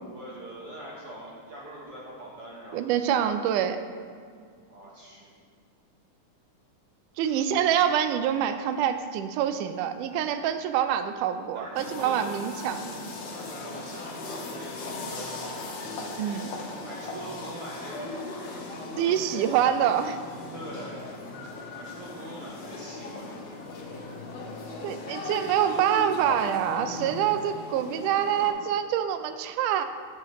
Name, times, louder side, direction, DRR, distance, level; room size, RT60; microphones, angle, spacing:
voice 1, 0.1-2.8 4.7-5.3 7.2-7.4 11.6-12.3 13.3-15.9 16.8-18.7 20.5-21.1 21.8-23.5, right 1 dB, 60° right, -5 dB, 1.7 m, -43 dB
voice 2, 2.7-3.8 7.2-12.9 16.2-16.5 19.0-20.2 24.8-29.8, right 9 dB, 90° right, 10 dB, 2.1 m, -26 dB
sound 1, 11.8-28.5, left 2 dB, 85° left, 2.8 m, -38 dB
9.9 x 9.8 x 3.1 m, 2.1 s
omnidirectional pair, 3.6 m